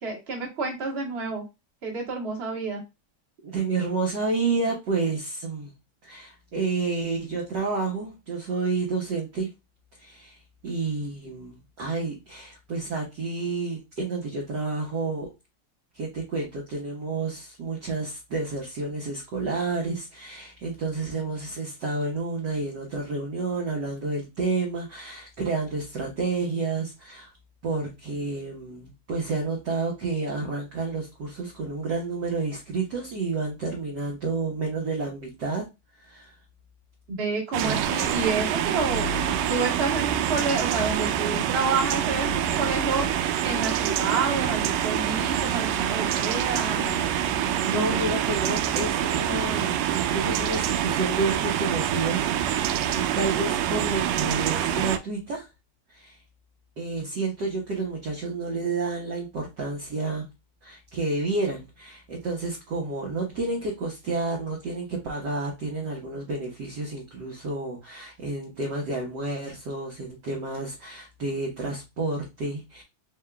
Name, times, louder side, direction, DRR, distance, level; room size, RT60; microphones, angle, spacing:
voice 1, 0.0-1.4 1.8-2.8 37.1-43.1 43.4-47.1 47.4-48.1, right 4 dB, 30° right, -1 dB, 1.2 m, -29 dB
voice 2, 3.4-5.7 6.0-9.5 10.0-15.3 15.9-27.3 27.6-35.7 36.0-36.3 37.6-37.8 47.6-55.5 55.9-56.2 56.8-60.3 60.6-72.8, right 3 dB, 60° right, -2 dB, 1.1 m, -30 dB
sound 1, 37.5-55.0, right 10 dB, 80° right, 1.5 m, -26 dB
4.6 x 3.6 x 2.2 m, 0.24 s
omnidirectional pair, 3.4 m